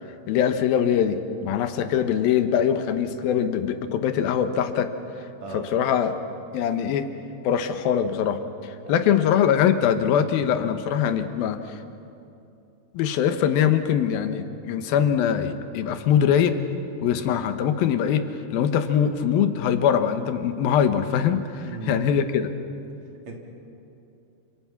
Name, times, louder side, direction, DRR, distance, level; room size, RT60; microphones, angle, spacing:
voice 1, 0.3-4.9 5.5-6.2 6.5-7.1 7.4-11.8 12.9-16.6 17.0-22.5, left 8 dB, 85° left, 9 dB, 3.0 m, -22 dB
voice 2, 21.6-22.0 23.3-23.4, right 3 dB, 50° right, 1 dB, 4.0 m, -36 dB
29.0 x 26.5 x 5.9 m, 2.7 s
omnidirectional pair, 4.1 m